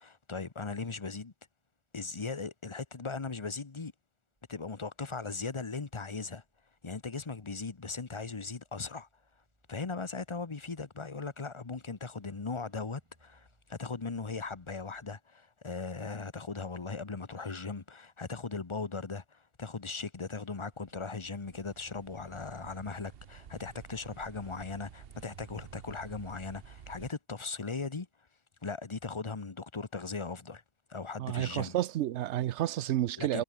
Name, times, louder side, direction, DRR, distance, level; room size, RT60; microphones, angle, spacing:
voice 1, 0.0-1.3 1.9-3.9 4.5-6.4 6.8-9.1 9.7-28.1 28.6-30.6 30.9-31.8 33.2-33.4, left 4 dB, 25° left, 1.0 m, -38 dB
sound 1, 5.1-15.2, right 1 dB, 25° right, 6.8 m, -72 dB
sound 2, 20.6-27.1, right 8 dB, 60° right, 1.0 m, -52 dB
voice 2, 31.2-33.4, right 13 dB, 85° right, 0.9 m, -30 dB
omnidirectional pair, 1.2 m